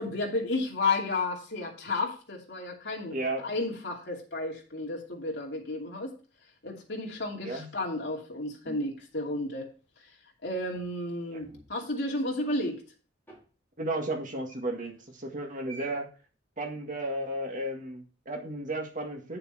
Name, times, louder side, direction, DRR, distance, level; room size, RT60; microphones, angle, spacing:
voice 1, 0.0-3.2 3.4-6.1 6.6-9.7 10.4-12.8, left 2 dB, 65° left, -1 dB, 2.6 m, -32 dB
voice 2, 3.1-3.4 7.4-7.7 11.3-11.4 13.8-16.1 16.6-19.4, right 1 dB, 45° right, 3 dB, 1.9 m, -34 dB
sound 1, 8.6-9.9 10.7-11.8 13.3-13.4 14.5-14.9 15.7-16.0, right 2 dB, 10° left, 4.8 m, -49 dB
8.6 x 6.8 x 4.3 m, 0.36 s
head